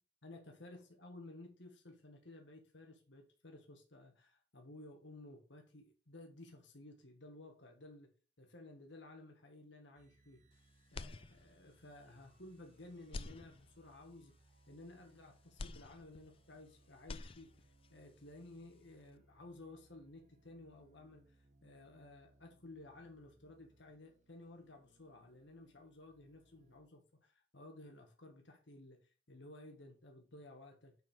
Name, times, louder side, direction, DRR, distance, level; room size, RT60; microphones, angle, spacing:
voice 1, 0.2-8.1 8.4-10.4 10.9-14.3 14.7-30.9, left 2 dB, 65° left, 3 dB, 1.8 m, -55 dB
sound 1, 9.9-26.8, right 2 dB, 35° right, 1.1 m, -70 dB
sound 2, 10.9-11.8 12.3-12.4 13.0-14.1 15.6-16.7 16.9-17.9, left 3 dB, 30° left, 0.4 m, -48 dB
9.1 x 4.6 x 5.1 m, 0.34 s
head